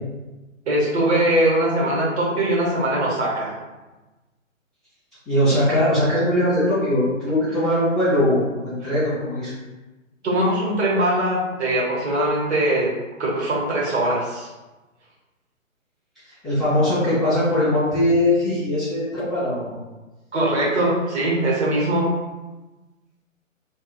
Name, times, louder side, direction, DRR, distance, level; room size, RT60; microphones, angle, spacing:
voice 1, 0.7-3.5 10.2-12.9 13.2-14.5 20.3-22.1, right 1 dB, 55° right, -5 dB, 1.1 m, -21 dB
voice 2, 5.3-9.5 16.4-19.7, left 1 dB, ahead, -19 dB, 0.8 m, -20 dB
2.6 x 2.3 x 2.2 m, 1.1 s
figure-of-eight pair, 140°, 41 cm